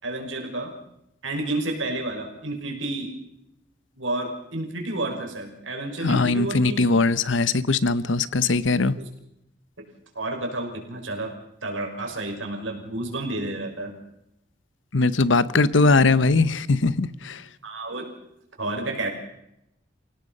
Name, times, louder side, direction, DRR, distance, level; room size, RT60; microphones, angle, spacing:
voice 1, 0.0-0.7 1.2-3.1 4.0-6.9 9.0-9.1 10.2-11.3 11.6-13.9 17.6-18.1 18.6-19.1, right 2 dB, 85° right, 2 dB, 5.7 m, -30 dB
voice 2, 6.0-8.9 14.9-17.4, left 3 dB, 75° left, 17 dB, 0.9 m, -20 dB
28.5 x 17.5 x 5.4 m, 0.84 s
head